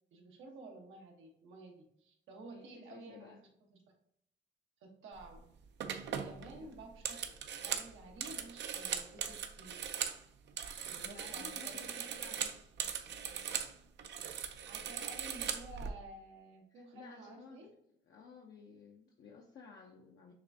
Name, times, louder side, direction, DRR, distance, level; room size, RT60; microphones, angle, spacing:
voice 1, 0.1-3.8 4.8-5.4 6.1-7.3 7.6-9.8 10.8-12.1 14.6-17.7, right 2 dB, 85° right, 0 dB, 1.1 m, -52 dB
voice 2, 2.5-3.4 6.4-6.7 11.0-12.7 16.7-17.8 18.1-20.3, left 5 dB, 65° left, 0 dB, 0.7 m, -55 dB
sound 1, 5.2-5.4 5.8-10.2 10.5-13.7 14.0-15.9, right 8 dB, 65° right, 0.5 m, -39 dB
6.5 x 2.4 x 2.6 m, 0.72 s
cardioid pair, 90°, 20 cm